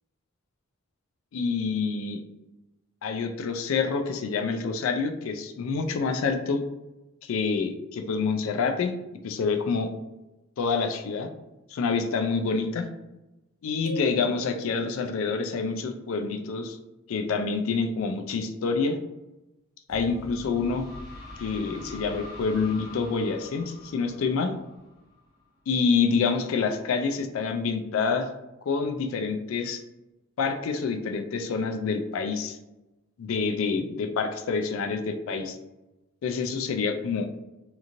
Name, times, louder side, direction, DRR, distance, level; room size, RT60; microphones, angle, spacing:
voice 1, 1.3-2.2 3.0-6.6 7.2-8.9 9.2-9.9 10.6-11.3 11.7-12.9 13.6-16.8 17.1-19.0 19.9-20.8 21.4-24.5 25.7-28.3 28.7-29.8 30.4-32.6 33.2-35.6 36.2-37.3, left 5 dB, 70° left, 6 dB, 0.3 m, -27 dB
sound 1, 13.9-15.4, right 2 dB, 80° right, 0.6 m, -41 dB
sound 2, 19.9-25.5, left 1 dB, 20° left, 0.6 m, -44 dB
2.9 x 2.5 x 2.5 m, 0.98 s
head